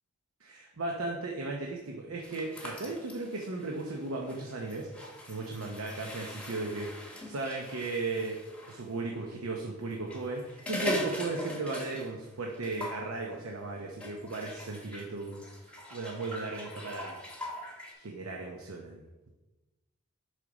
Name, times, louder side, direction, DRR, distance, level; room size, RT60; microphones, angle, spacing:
voice 1, 0.4-4.9 5.3-8.4 8.7-15.4 15.9-17.2 17.9-19.3, right 3 dB, 75° right, 0 dB, 0.8 m, -36 dB
sound 1, 2.2-8.8 9.9-12.3 12.5-13.0 14.0-17.9, left 1 dB, 5° left, 1.0 m, -41 dB
6.4 x 5.1 x 4.0 m, 1.1 s
head